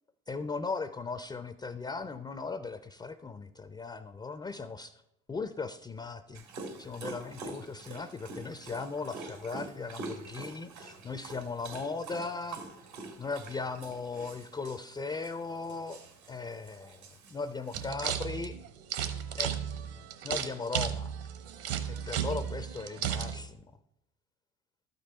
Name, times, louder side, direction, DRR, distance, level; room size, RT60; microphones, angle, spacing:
voice 1, 0.3-5.0 5.3-6.4 6.8-12.6 13.2-18.6 19.4-19.5 20.2-21.1 22.1-23.7, left 4 dB, 10° left, 11 dB, 0.4 m, -38 dB
Dog, 6.3-17.9, right 3 dB, 85° right, 1.9 m, -46 dB
sound 1, 17.7-23.4, right 9 dB, 65° right, 1.1 m, -34 dB
12.0 x 5.3 x 4.3 m, 0.84 s
hypercardioid pair, 65°, 42 cm